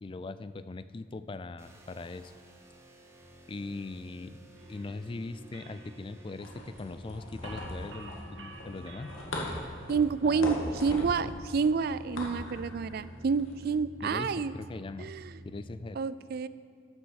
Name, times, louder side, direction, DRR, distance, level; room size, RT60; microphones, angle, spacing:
voice 1, 0.0-2.3 3.5-4.4 4.7-9.1 10.2-10.5 10.9-11.3 14.0-15.1 15.4-16.0, left 3 dB, 25° left, 14 dB, 0.3 m, -40 dB
sound 1, 1.6-15.9, equal, 15° right, 1.1 m, -51 dB
sound 2, 4.5-9.7, right 3 dB, 65° right, 1.3 m, -52 dB
sound 3, 6.4-13.7, left 1 dB, 85° left, 2.0 m, -40 dB
voice 2, 9.9-14.5 15.0-15.3 16.0-16.5, right 5 dB, 50° right, 16 dB, 0.4 m, -29 dB
11.5 x 6.9 x 6.5 m, 2.2 s
head